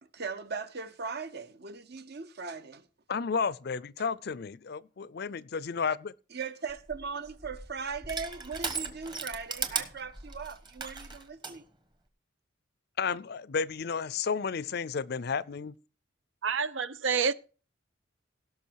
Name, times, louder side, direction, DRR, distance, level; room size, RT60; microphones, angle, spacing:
voice 1, 0.0-2.9 6.3-11.7, right 5 dB, 50° right, 0.9 m, -39 dB
voice 2, 3.1-6.1 13.0-15.7, left 5 dB, 50° left, 0.5 m, -32 dB
Crushing, 6.7-11.6, right 4 dB, 25° right, 1.3 m, -37 dB
voice 3, 16.4-17.3, right 6 dB, 70° right, 0.6 m, -28 dB
17.5 x 6.1 x 4.7 m
head